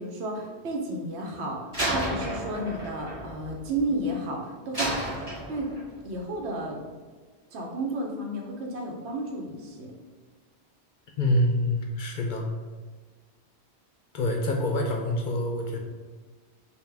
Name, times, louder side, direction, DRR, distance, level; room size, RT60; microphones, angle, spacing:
voice 1, 0.0-1.6 1.9-4.9 5.5-5.7 6.0-6.8 7.5-9.9, right 1 dB, 80° right, 0 dB, 1.0 m, -32 dB
Slam, 1.7-4.2 4.7-6.0, right 1 dB, 35° right, 1.7 m, -32 dB
voice 2, 11.2-12.5 14.1-15.8, left 1 dB, 55° left, 1 dB, 0.6 m, -26 dB
5.3 x 2.2 x 3.3 m, 1.4 s
omnidirectional pair, 1.1 m